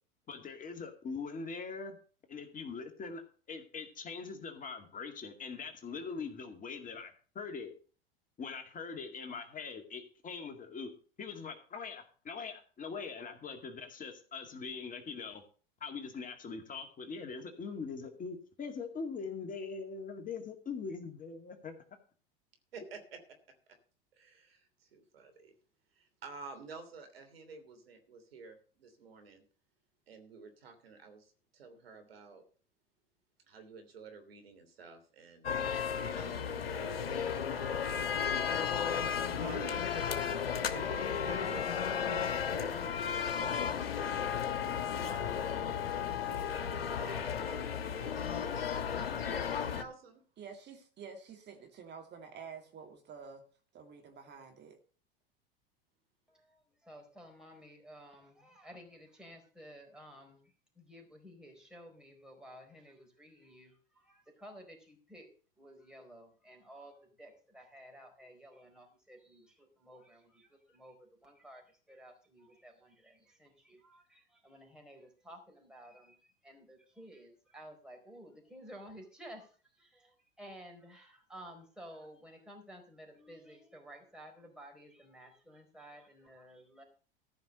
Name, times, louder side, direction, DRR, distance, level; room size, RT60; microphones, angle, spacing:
voice 1, 0.3-2.0 2.3-3.2 3.5-7.7 8.4-10.9 11.2-15.4 15.8-21.7, left 5 dB, 30° left, 2.2 m, -42 dB
voice 2, 24.2-25.5 25.9-29.4 30.1-32.4 33.5-35.5 36.2-36.8 39.3-39.9 40.6-42.7 42.9-45.8 46.0-48.3 48.9-50.2, right 4 dB, 85° right, 3.1 m, -51 dB
sound 1, 35.4-49.8, left 7 dB, 85° left, 1.3 m, -34 dB
voice 3, 50.4-53.4 53.7-54.8, right 6 dB, 35° right, 2.4 m, -49 dB
voice 4, 56.3-65.3 65.6-86.8, equal, 5° right, 4.4 m, -54 dB
14.0 x 5.8 x 6.5 m
hypercardioid pair, 95°, 29 cm